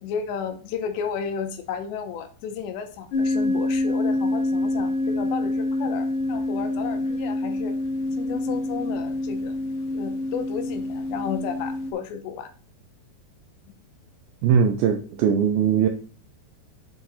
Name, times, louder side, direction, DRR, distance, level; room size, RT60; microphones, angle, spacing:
voice 1, 0.0-7.7 8.2-9.6 9.9-12.5, left 7 dB, 90° left, 7 dB, 3.1 m, -33 dB
sound 1, 3.1-11.9, left 2 dB, 65° left, 2.3 m, -26 dB
voice 2, 14.4-15.9, right 7 dB, 85° right, 6 dB, 2.1 m, -20 dB
9.6 x 4.9 x 4.1 m, 0.41 s
omnidirectional pair, 5.0 m